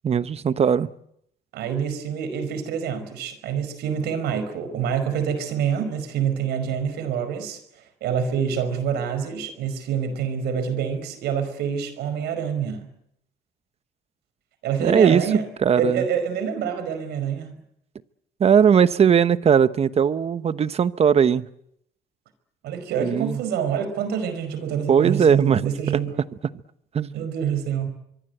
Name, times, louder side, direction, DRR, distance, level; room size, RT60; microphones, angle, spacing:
voice 1, 0.0-0.9 14.8-15.2 15.6-16.0 18.4-21.5 23.0-23.4 24.9-25.6 26.9-27.1, right 7 dB, 35° right, 1.1 m, -19 dB
voice 2, 1.5-7.6 8.0-12.9 14.6-15.5 15.8-17.5 22.6-26.2 27.1-27.9, right 7 dB, 80° right, 5.0 m, -26 dB
24.5 x 23.5 x 8.0 m
cardioid pair, 110°, 17 cm